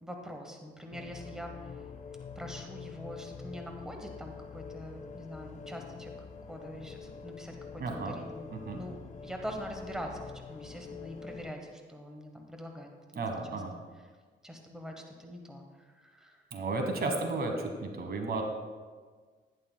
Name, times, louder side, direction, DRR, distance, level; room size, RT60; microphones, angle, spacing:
voice 1, 0.0-1.9 2.3-6.1 6.5-13.6 13.9-14.1 14.4-16.4 17.0-17.3, equal, 5° right, 2 dB, 1.2 m, -44 dB
sound 1, 0.9-11.5, left 6 dB, 35° left, 0.7 m, -46 dB
voice 2, 7.8-8.1 8.7-8.8 13.2-13.7 16.5-17.5 17.8-18.4, right 3 dB, 50° right, 4 dB, 1.2 m, -33 dB
11.0 x 10.5 x 2.2 m, 1.5 s
cardioid pair, 90°, 20 cm